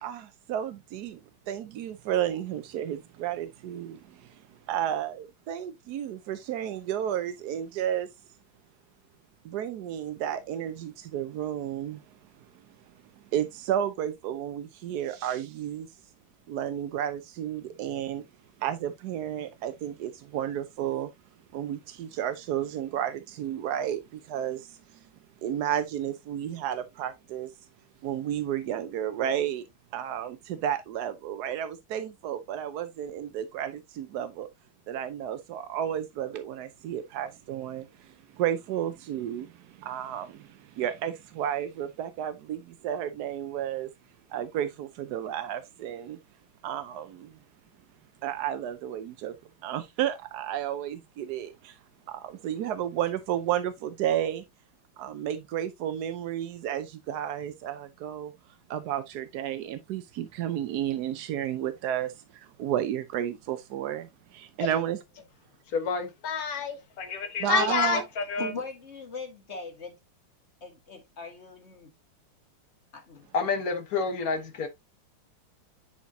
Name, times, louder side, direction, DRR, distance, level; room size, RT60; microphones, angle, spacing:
voice 1, 0.0-1.2 1.5-4.0 4.7-8.1 9.5-12.0 13.3-15.9 16.5-18.2 18.6-21.1 21.5-24.0 24.3-24.6 25.4-27.5 28.0-29.6 29.9-34.5 34.9-37.8 38.4-39.5 39.8-40.3 40.8-43.9 44.3-46.2 46.6-47.3 48.2-49.3 49.6-51.7 52.1-54.4 55.0-58.3 58.7-62.1 62.6-64.1 64.3-65.0 67.4-68.0 68.4-68.6, right 10 dB, 70° right, 1.0 m, -32 dB
voice 2, 65.7-68.5 73.3-74.7, left 5 dB, 50° left, 1.6 m, -28 dB
voice 3, 68.4-70.0 70.6-71.9 72.9-73.3, left 4 dB, 35° left, 1.9 m, -40 dB
10.0 x 4.4 x 2.7 m
omnidirectional pair, 2.3 m